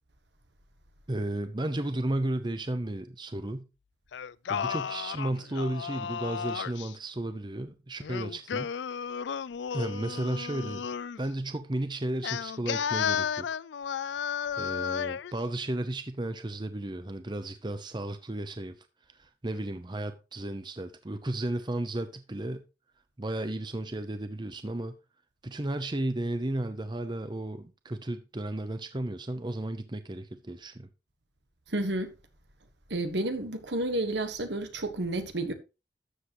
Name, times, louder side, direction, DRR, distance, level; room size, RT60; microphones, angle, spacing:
voice 1, 1.1-3.7 4.5-8.7 9.7-10.9 11.2-13.6 14.6-18.8 19.2-22.6 23.2-24.9 25.4-30.9, right 1 dB, 25° right, 0.7 m, -33 dB
Singing, 4.1-6.9 8.0-11.2 12.2-15.3, left 7 dB, 80° left, 0.4 m, -33 dB
voice 2, 31.7-32.1 32.9-35.5, right 1 dB, 75° right, 1.5 m, -31 dB
12.5 x 7.6 x 3.1 m
head